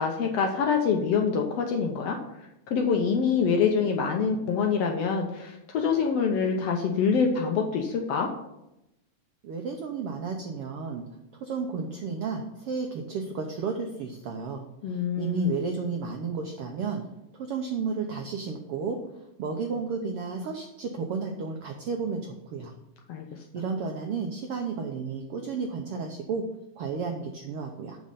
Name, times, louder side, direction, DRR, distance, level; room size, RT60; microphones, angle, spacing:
voice 1, 0.0-2.2 2.7-8.3 14.8-15.6 23.1-23.2, left 6 dB, 70° left, 2 dB, 1.6 m, -25 dB
voice 2, 9.4-11.0 11.3-17.1 17.3-22.7 23.5-26.4 26.8-28.0, right 5 dB, 80° right, 3 dB, 1.3 m, -32 dB
7.7 x 6.4 x 5.5 m, 0.87 s
omnidirectional pair, 3.6 m